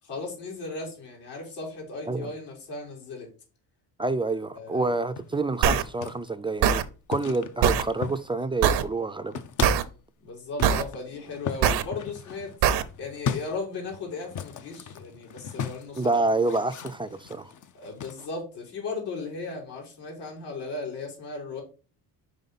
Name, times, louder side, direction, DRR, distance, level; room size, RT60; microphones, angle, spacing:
voice 1, 0.0-3.3 4.6-4.9 10.2-12.6 13.0-16.2 17.7-21.6, left 3 dB, 75° left, 3.7 m, -36 dB
voice 2, 4.0-6.8 7.1-9.4 16.0-17.5, right 3 dB, 10° right, 0.4 m, -28 dB
sound 1, 5.0-6.3 7.1-8.4 8.7-9.9 10.6-18.3, left 7 dB, 45° left, 0.7 m, -37 dB
sound 2, 5.6-5.8 6.6-6.8 7.6-7.8 8.6-8.8 9.6-9.8 10.6-10.8 11.6-11.8 12.6-12.8, right 8 dB, 70° right, 0.8 m, -21 dB
5.3 x 5.0 x 4.0 m
cardioid pair, 100°, 42 cm